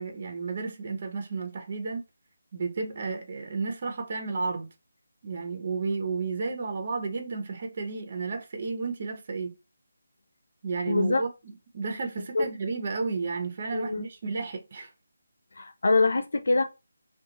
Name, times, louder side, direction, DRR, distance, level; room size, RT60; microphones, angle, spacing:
voice 1, 0.0-2.0 2.5-4.7 5.2-9.5 10.6-14.9, right 4 dB, 45° right, 0.6 m, -32 dB
voice 2, 10.9-11.2 12.3-12.5 13.7-14.0 15.6-16.6, left 3 dB, 65° left, 0.3 m, -24 dB
2.4 x 2.3 x 2.9 m
figure-of-eight pair, 155°, 0 cm